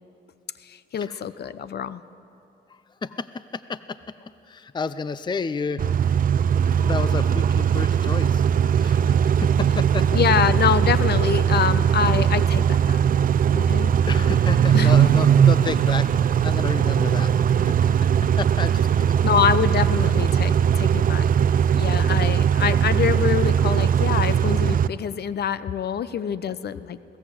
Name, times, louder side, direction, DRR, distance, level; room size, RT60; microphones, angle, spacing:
voice 1, 0.6-2.0 10.1-13.0 13.5-14.9 19.2-21.5 21.7-27.0, left 8 dB, 55° left, 15 dB, 0.8 m, -25 dB
voice 2, 3.0-4.0 4.5-5.8 6.8-10.2 13.6-13.7 14.1-16.1 16.4-18.1 18.4-19.2, left 5 dB, 20° left, 14 dB, 0.6 m, -31 dB
Car / Idling / Accelerating revving vroom, 5.8-24.9, right 8 dB, 45° right, 0.5 m, -20 dB
21.5 x 17.5 x 8.0 m, 2.7 s
cardioid pair, 90°, 20 cm